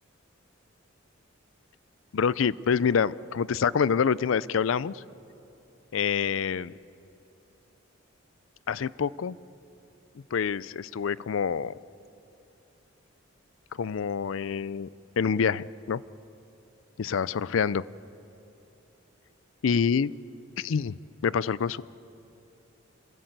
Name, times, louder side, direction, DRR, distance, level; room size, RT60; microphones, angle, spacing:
voice 1, 2.1-5.0 5.9-6.7 8.7-9.4 10.3-11.8 13.8-14.9 15.2-16.0 17.0-17.8 19.6-20.1 20.6-21.8, left 6 dB, 70° left, 20 dB, 0.4 m, -26 dB
25.5 x 16.5 x 8.0 m, 2.8 s
head